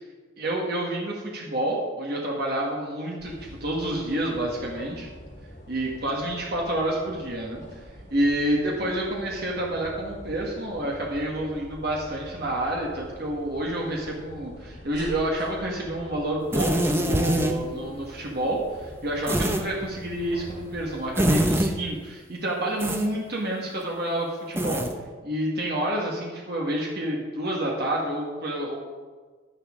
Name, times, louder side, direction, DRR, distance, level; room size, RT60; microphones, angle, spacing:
voice 1, 0.4-5.1 5.7-7.6 8.1-24.8 25.2-28.8, right 1 dB, 50° right, -2 dB, 1.5 m, -28 dB
sound 1, 3.2-21.7, equal, 60° left, 3.0 m, -45 dB
sound 2, 16.5-17.5 19.3-19.6 21.2-21.7 22.8-23.1 24.6-24.9, right 1 dB, 10° right, 0.6 m, -23 dB
10.5 x 10.0 x 3.7 m, 1.4 s
head